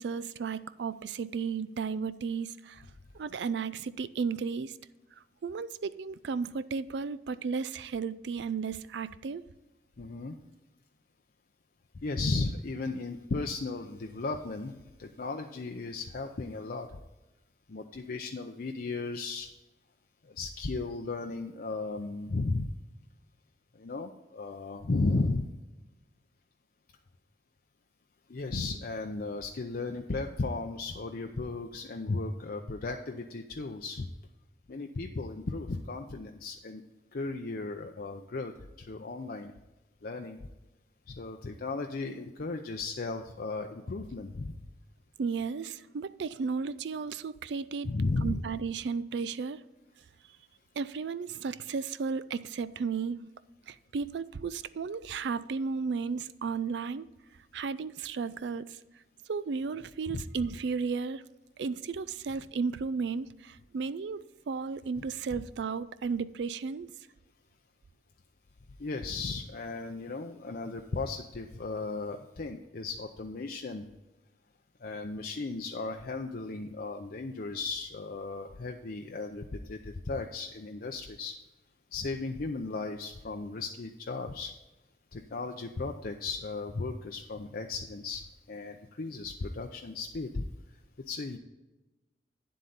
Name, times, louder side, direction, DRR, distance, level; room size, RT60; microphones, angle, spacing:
voice 1, 0.0-2.9 3.1-4.8 5.4-9.5 45.2-47.9 48.2-49.6 50.8-53.3 53.7-57.1 57.5-58.8 59.3-61.2 61.6-66.9, right 5 dB, 80° right, 0.4 m, -34 dB
voice 2, 10.0-10.4 12.0-14.7 15.0-16.9 17.7-19.5 20.3-22.7 23.8-25.5 28.3-34.1 34.7-36.8 37.1-39.5 40.0-40.4 41.1-44.5 47.8-48.4 60.1-60.2 68.8-73.8 74.8-81.3 81.9-84.5 85.1-88.2 88.5-90.4 91.1-91.4, left 3 dB, 55° left, 0.6 m, -35 dB
9.7 x 7.6 x 4.0 m
head